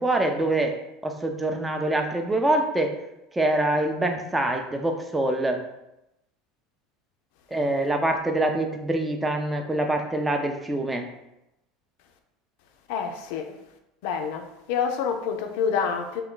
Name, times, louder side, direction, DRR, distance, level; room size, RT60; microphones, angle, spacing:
voice 1, 0.0-3.0 3.3-5.6 7.5-11.1, right 1 dB, 10° right, 4 dB, 0.5 m, -25 dB
voice 2, 12.9-13.6 14.0-16.2, left 6 dB, 65° left, 5 dB, 0.4 m, -27 dB
2.3 x 2.2 x 3.7 m, 0.88 s
hypercardioid pair, 80°, 0 cm